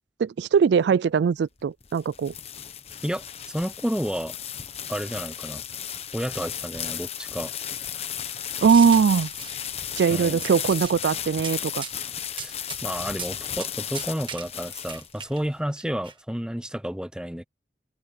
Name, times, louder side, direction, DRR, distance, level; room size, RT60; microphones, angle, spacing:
voice 1, 0.2-2.3 8.6-9.3 10.0-11.8, right 6 dB, 75° right, 0.3 m, -21 dB
sound 1, 1.6-15.4, left 9 dB, 35° left, 1.1 m, -35 dB
voice 2, 3.0-4.3 4.9-5.6 6.1-7.5 10.1-10.4 12.4-12.6 12.8-17.4, equal, 5° right, 0.8 m, -31 dB
sound 2, 8.5-10.0 10.3-10.9 11.4-11.5 11.8-12.0 12.4-12.8 13.1-13.3 13.6-13.7 13.9-15.4 15.8-16.1, right 7 dB, 25° right, 1.5 m, -39 dB
open air
head